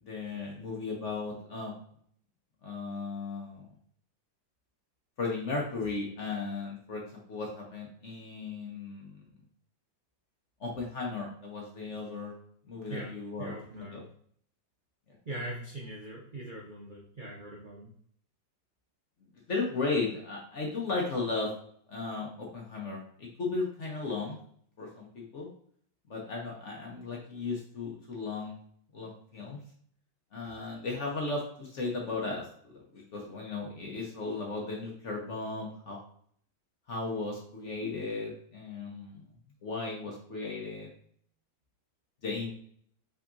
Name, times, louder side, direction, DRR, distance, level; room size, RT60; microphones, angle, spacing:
voice 1, 0.0-1.7 2.6-3.6 5.2-7.0 7.3-9.2 10.6-12.3 12.7-14.0 19.5-21.5 21.9-24.4 24.8-25.5 26.1-28.6 28.9-29.6 30.3-36.0 36.9-39.3 39.6-40.9 42.2-42.5, left 3 dB, 50° left, -1 dB, 0.9 m, -35 dB
voice 2, 13.4-14.1 15.2-17.9, right 1 dB, 70° right, -3 dB, 0.4 m, -41 dB
5.8 x 3.5 x 2.6 m, 0.62 s
omnidirectional pair, 2.1 m